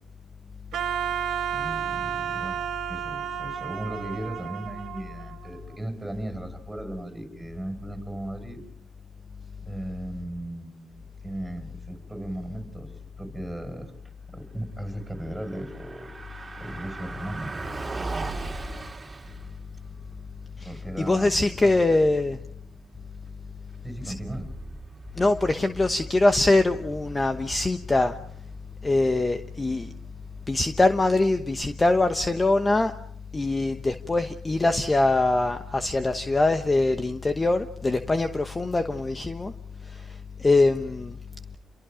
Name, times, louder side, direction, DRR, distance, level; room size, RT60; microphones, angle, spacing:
Wind instrument woodwind instrument, 0.7-5.8, right 9 dB, 75° right, 1.9 m, -32 dB
voice 1, 1.5-8.6 9.6-13.9 14.3-16.1 16.6-17.7 18.1-18.5 20.6-22.1 23.8-24.5, right 1 dB, 5° right, 6 dB, 5.8 m, -37 dB
Car passing by, 15.1-31.2, right 3 dB, 20° right, 3.2 m, -41 dB
voice 2, 21.0-22.4 24.1-24.2 25.2-28.2 28.8-29.9 30.5-32.9 33.3-39.5 39.8-41.2, left 2 dB, 20° left, 8 dB, 1.1 m, -23 dB
29.5 x 23.5 x 5.1 m, 0.69 s
cardioid pair, 90°, 0 cm